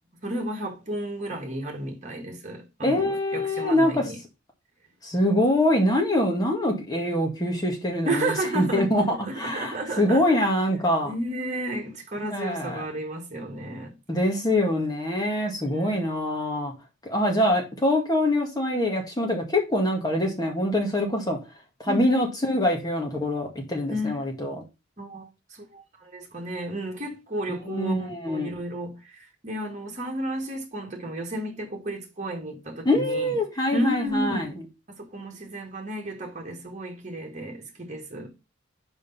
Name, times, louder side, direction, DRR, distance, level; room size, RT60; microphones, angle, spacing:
voice 1, 0.2-4.2 8.1-10.4 11.0-14.0 15.6-16.0 21.9-22.1 23.9-24.1 25.0-33.4 33.7-34.5 35.0-38.3, right 1 dB, 35° right, 1.8 m, -32 dB
voice 2, 2.8-4.0 5.0-11.1 12.3-12.8 14.1-16.7 17.0-21.4 21.8-24.5 27.7-28.5 32.8-34.5, left 1 dB, 20° left, 1.8 m, -24 dB
5.3 x 5.1 x 5.4 m
head